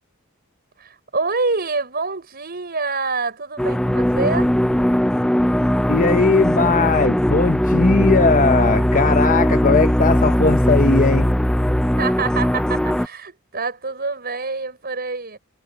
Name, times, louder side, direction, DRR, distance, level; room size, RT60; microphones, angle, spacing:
voice 1, 0.8-4.5 12.0-15.4, right 4 dB, 50° right, 5.9 m, -26 dB
sound 1, 3.6-13.1, equal, 5° left, 0.4 m, -19 dB
voice 2, 5.9-11.3, left 4 dB, 40° left, 0.9 m, -18 dB
head